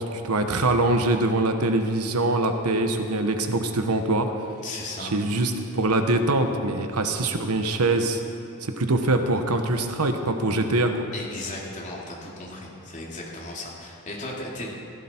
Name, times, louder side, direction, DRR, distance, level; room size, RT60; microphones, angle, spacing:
voice 1, 0.0-4.3 5.0-8.2 8.6-11.1, right 2 dB, 85° right, 6 dB, 1.1 m, -23 dB
voice 2, 4.6-5.1 11.1-14.7, left 2 dB, 35° left, -3 dB, 2.8 m, -36 dB
16.5 x 15.0 x 4.5 m, 2.5 s
head